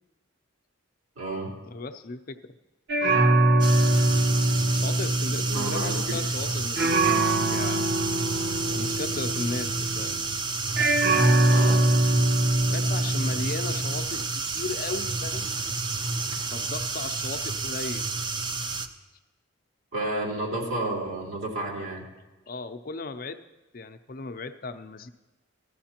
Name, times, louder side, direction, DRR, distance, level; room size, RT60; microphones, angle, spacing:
voice 1, 1.2-1.5 5.5-6.0 11.5-11.8 19.9-22.0, right 2 dB, 85° right, -4 dB, 3.2 m, -31 dB
voice 2, 1.7-2.5 4.7-7.2 7.5-8.0 8.7-10.2 12.7-15.5 16.5-18.1 22.5-23.4 23.7-25.1, left 3 dB, 45° left, 9 dB, 0.5 m, -36 dB
sound 1, 2.9-6.5 6.8-10.3 10.8-14.1, right 2 dB, 50° right, 0.9 m, -23 dB
sound 2, 3.6-18.9, right 3 dB, 20° right, 0.4 m, -30 dB
15.5 x 12.5 x 2.9 m, 1.1 s
head